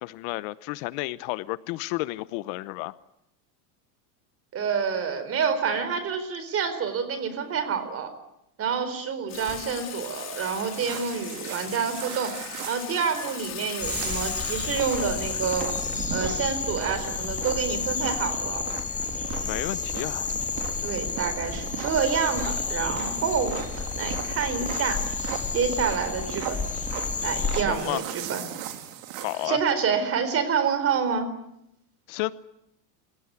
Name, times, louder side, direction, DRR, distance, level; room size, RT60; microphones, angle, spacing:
voice 1, 0.0-2.9 19.4-20.3 27.5-28.0 29.2-29.6 32.1-32.3, left 20 dB, 55° left, 17 dB, 0.9 m, -31 dB
voice 2, 4.5-8.1 8.6-12.3 12.7-15.7 16.1-18.7 20.8-25.0 25.5-26.6 27.2-28.4 29.4-31.3, right 6 dB, 30° right, 11 dB, 4.4 m, -28 dB
Water / Water tap faucet / Sink (filling or washing), 9.3-16.1, left 10 dB, 35° left, 3.7 m, -39 dB
sound 1, 10.1-29.5, right 11 dB, 60° right, 3.6 m, -38 dB
sound 2, 13.8-27.6, left 5 dB, 15° left, 2.1 m, -31 dB
29.0 x 17.0 x 9.7 m, 0.82 s
supercardioid pair, 145°, 45 cm